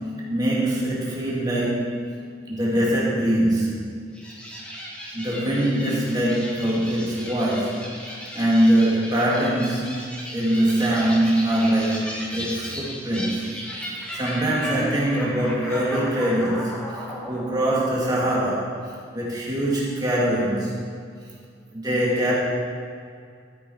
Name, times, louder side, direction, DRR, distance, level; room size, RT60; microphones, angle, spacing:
voice 1, 0.0-4.0 5.1-7.9 8.3-10.0 10.3-13.5 14.1-16.9 17.3-18.8 19.1-20.7 21.7-22.3, right 1 dB, 20° right, -5 dB, 2.4 m, -23 dB
sound 1, 4.1-18.8, equal, 5° left, 1.6 m, -36 dB
13.0 x 8.3 x 4.7 m, 2.2 s
head